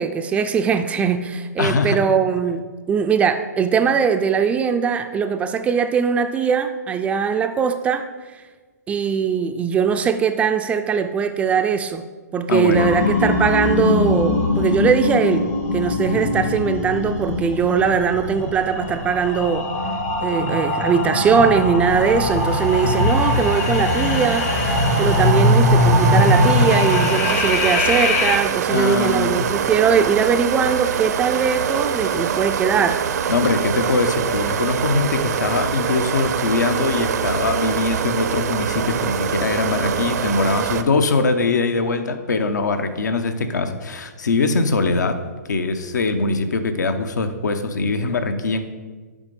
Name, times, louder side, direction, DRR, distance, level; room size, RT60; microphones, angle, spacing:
voice 1, 0.0-8.0 8.9-12.0 12.3-15.5 15.7-19.6 20.2-24.7 25.0-33.0, right 6 dB, 15° right, 7 dB, 0.3 m, -20 dB
voice 2, 1.6-2.0 12.5-12.9 28.7-29.5 33.3-45.2 45.5-48.7, left 3 dB, 85° left, 8 dB, 0.8 m, -22 dB
sound 1, 12.7-28.4, left 2 dB, 55° left, 1.8 m, -21 dB
sound 2, 21.9-40.8, right 7 dB, 65° right, 0.6 m, -25 dB
7.2 x 5.1 x 5.2 m, 1.4 s
hypercardioid pair, 135°, 9 cm